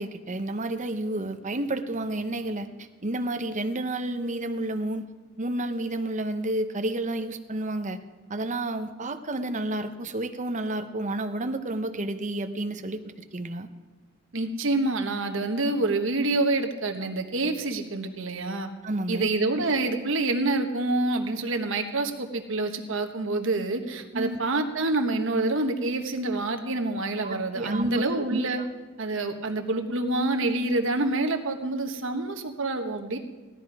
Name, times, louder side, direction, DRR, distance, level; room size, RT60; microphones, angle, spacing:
voice 1, 0.0-5.1 5.4-8.0 8.3-13.7 18.8-19.3 24.1-24.4 27.2-28.6, right 1 dB, 40° right, 8 dB, 0.9 m, -31 dB
voice 2, 14.3-18.7 19.1-28.6 29.0-33.2, right 2 dB, 70° right, 5 dB, 1.3 m, -27 dB
16.5 x 13.0 x 4.8 m, 1.3 s
head